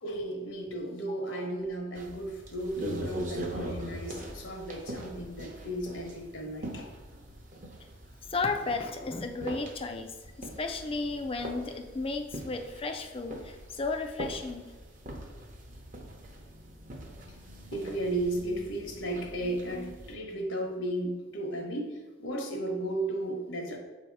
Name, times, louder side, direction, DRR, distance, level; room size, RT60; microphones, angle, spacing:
voice 1, 0.0-6.9 17.3-17.4 17.7-23.8, right 1 dB, 75° left, 2 dB, 1.0 m, -34 dB
sound 1, 2.0-20.1, right 1 dB, 40° right, 0.7 m, -42 dB
voice 2, 8.3-14.7, left 3 dB, 30° left, 6 dB, 0.4 m, -34 dB
7.5 x 2.8 x 4.6 m, 1.2 s
head